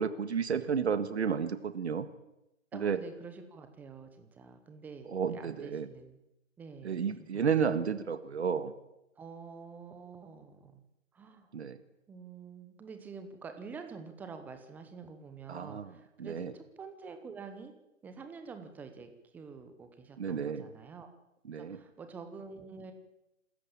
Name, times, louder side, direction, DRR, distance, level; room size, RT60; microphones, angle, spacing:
voice 1, 0.0-2.1 2.7-3.0 5.1-5.9 6.8-8.7 11.5-11.8 15.5-15.9 16.2-16.5 20.2-20.7 21.5-21.8, right 6 dB, 55° right, 12 dB, 1.9 m, -32 dB
voice 2, 2.7-6.2 6.6-7.5 9.2-10.8 11.1-11.5 12.1-17.7 18.0-21.1 21.5-22.9, right 5 dB, 5° right, 7 dB, 0.9 m, -47 dB
26.5 x 14.0 x 8.7 m, 0.88 s
figure-of-eight pair, 150°, 39 cm